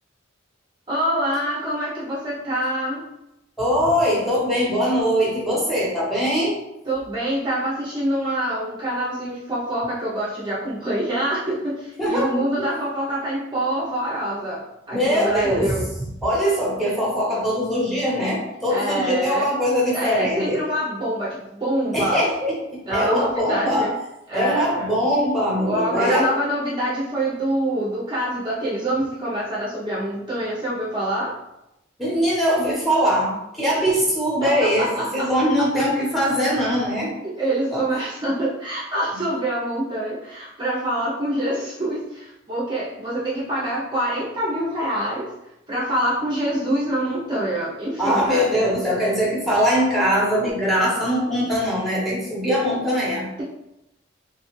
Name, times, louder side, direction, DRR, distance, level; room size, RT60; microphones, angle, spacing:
voice 1, 0.9-3.1 6.8-15.9 18.7-19.5 19.9-22.3 22.9-23.9 24.3-24.9 25.6-31.3 34.4-35.8 37.2-45.3 45.7-48.5, right 1 dB, 25° right, -7 dB, 0.6 m, -25 dB
voice 2, 3.6-6.6 12.0-12.3 12.6-12.7 14.9-20.6 21.9-23.9 24.3-26.3 32.0-37.1 37.7-37.8 48.0-53.3, equal, ahead, -5 dB, 0.9 m, -22 dB
3.1 x 2.3 x 3.0 m, 0.88 s
head